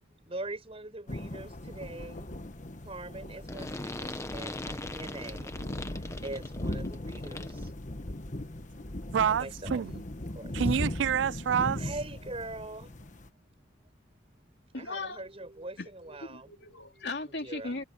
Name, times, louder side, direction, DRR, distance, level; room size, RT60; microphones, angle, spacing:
voice 1, 0.3-2.2 2.8-5.5 6.2-7.5 9.3-9.8 10.4-10.5 11.8-12.9 14.8-16.5 17.4-17.8, right 2 dB, 35° right, 5.4 m, -42 dB
sound 1, 1.1-13.3, left 1 dB, 45° left, 1.4 m, -38 dB
sound 2, 3.5-7.7, left 2 dB, 15° left, 1.3 m, -40 dB
voice 2, 9.1-10.0 10.5-11.8, right 8 dB, 75° right, 0.3 m, -28 dB
voice 3, 14.7-15.2 15.8-17.8, left 3 dB, 65° left, 3.2 m, -38 dB
head